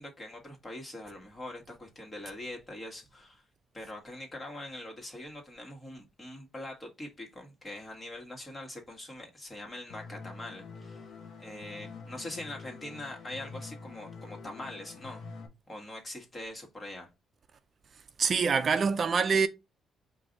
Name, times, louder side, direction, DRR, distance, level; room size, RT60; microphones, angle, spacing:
voice 1, 0.0-3.4 3.7-11.0 11.4-15.2 15.7-17.1, left 1 dB, 25° left, 1.5 m, -43 dB
sound 1, 9.9-15.5, left 4 dB, 75° left, 0.9 m, -46 dB
voice 2, 18.2-19.5, right 5 dB, 45° right, 0.4 m, -25 dB
4.7 x 2.6 x 3.9 m
cardioid pair, 90°, 0 cm